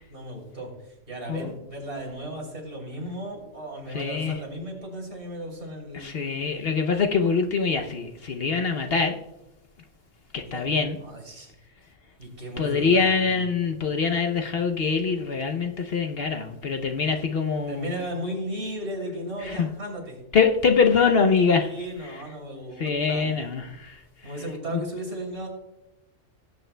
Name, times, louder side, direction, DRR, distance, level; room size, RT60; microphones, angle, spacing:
voice 1, 0.1-6.1 10.5-11.5 12.2-13.5 17.7-20.2 21.5-23.4 24.2-25.5, right 1 dB, 60° right, -1 dB, 3.4 m, -35 dB
voice 2, 3.9-4.4 5.9-9.1 10.3-11.0 12.6-17.9 19.4-19.7 20.3-21.7 22.8-24.0 24.7-24.8, left 5 dB, 55° left, 5 dB, 0.9 m, -24 dB
18.5 x 8.9 x 2.2 m, 0.92 s
omnidirectional pair, 1.3 m